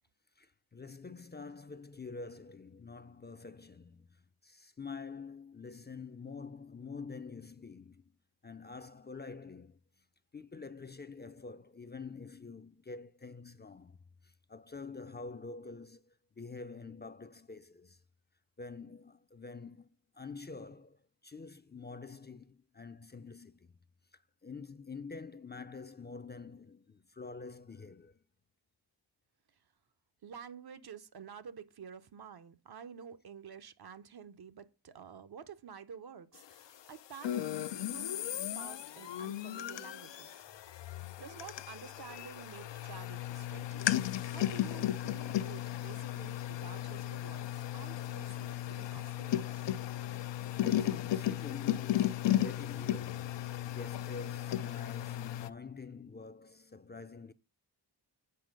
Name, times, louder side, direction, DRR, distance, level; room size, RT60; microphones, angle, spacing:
voice 1, 0.4-8.2 8.4-10.0 10.3-14.0 14.2-18.0 18.6-23.8 24.1-28.2 50.6-57.3, left 4 dB, 25° left, 0.4 m, -47 dB
voice 2, 30.2-40.4 41.2-49.8, right 7 dB, 60° right, 0.7 m, -50 dB
sound 1, 37.2-55.5, left 12 dB, 80° left, 0.5 m, -35 dB
7.8 x 4.4 x 5.2 m
wide cardioid pair, 90°, 42 cm